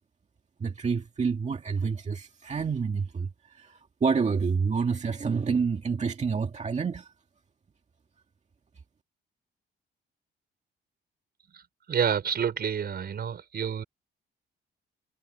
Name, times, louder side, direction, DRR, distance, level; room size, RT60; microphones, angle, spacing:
voice 1, 0.6-7.1, right 5 dB, 35° right, 2.0 m, -28 dB
voice 2, 11.9-13.8, right 7 dB, 55° right, 4.7 m, -28 dB
cardioid pair, 90°, 20 cm